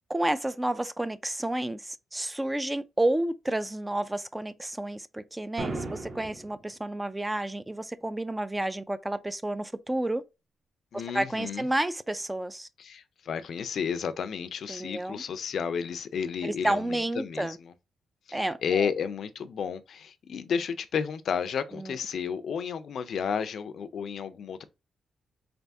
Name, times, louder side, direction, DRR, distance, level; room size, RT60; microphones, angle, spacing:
voice 1, 0.1-10.2 11.1-12.7 14.7-15.2 16.4-17.6 18.3-18.9 21.7-22.0, right 1 dB, 10° right, 0.3 m, -30 dB
sound 1, 5.6-6.6, right 2 dB, 40° right, 0.9 m, -35 dB
voice 2, 10.9-11.7 12.8-17.7 18.3-24.6, left 7 dB, 65° left, 0.4 m, -32 dB
3.9 x 3.4 x 2.6 m
cardioid pair, 110°, 0 cm